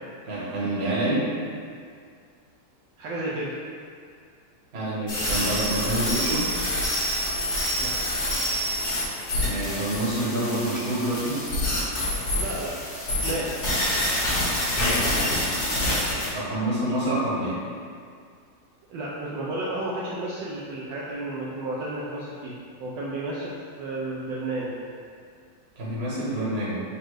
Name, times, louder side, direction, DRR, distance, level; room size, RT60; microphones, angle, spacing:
voice 1, 0.3-1.3 4.7-6.5 9.4-11.4 14.7-15.1 16.3-17.6 25.8-26.8, right 1 dB, 40° right, -8 dB, 1.2 m, -27 dB
voice 2, 3.0-3.5 7.8-8.1 12.4-12.7 13.2-13.7 18.9-24.8, right 1 dB, 75° right, -6 dB, 1.2 m, -32 dB
sound 1, 5.1-16.3, left 1 dB, 55° left, 1.7 m, -27 dB
4.3 x 2.5 x 4.7 m, 2.2 s
omnidirectional pair, 2.2 m